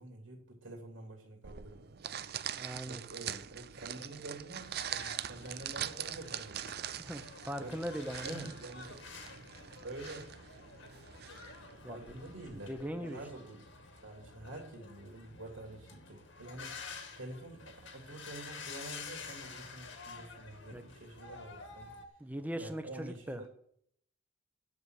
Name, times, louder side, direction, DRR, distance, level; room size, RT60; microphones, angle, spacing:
voice 1, 0.0-2.3 2.8-6.7 7.6-7.8 8.2-9.0 9.8-10.3 11.9-13.6 14.0-16.8 17.2-21.9 22.5-23.5, right 2 dB, 75° right, 1 dB, 3.0 m, -47 dB
sound 1, 1.4-12.8, right 10 dB, 50° right, 0.5 m, -43 dB
voice 2, 2.5-3.0 7.0-8.5 11.8-12.0 12.5-13.2 20.7-20.8 22.2-23.4, equal, 10° right, 8 dB, 1.0 m, -40 dB
sound 2, 4.6-22.1, left 4 dB, 70° left, 2.0 m, -50 dB
11.0 x 7.0 x 8.0 m, 0.67 s
head